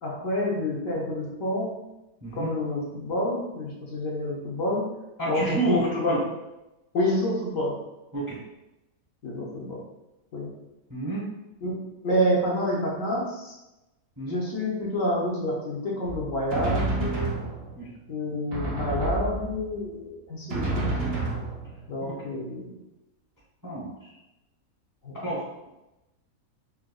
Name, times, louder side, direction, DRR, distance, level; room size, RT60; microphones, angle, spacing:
voice 1, 0.0-1.8 2.3-4.9 5.3-6.2 6.9-7.8 9.2-9.8 10.3-10.6 11.6-13.5 14.2-17.4 18.1-20.8 21.9-22.7 25.0-25.2, left 1 dB, 65° left, -3 dB, 1.0 m, -28 dB
voice 2, 2.2-2.5 5.2-6.2 8.1-8.4 10.9-11.2 14.2-14.4 17.7-17.9 22.0-22.1 23.6-23.9 25.2-25.7, right 2 dB, 15° right, -7 dB, 0.7 m, -30 dB
Drum, 16.0-17.9 18.5-19.8 20.5-22.0, right 2 dB, 55° right, 0.7 m, -30 dB
4.8 x 2.2 x 2.2 m, 0.96 s
omnidirectional pair, 1.6 m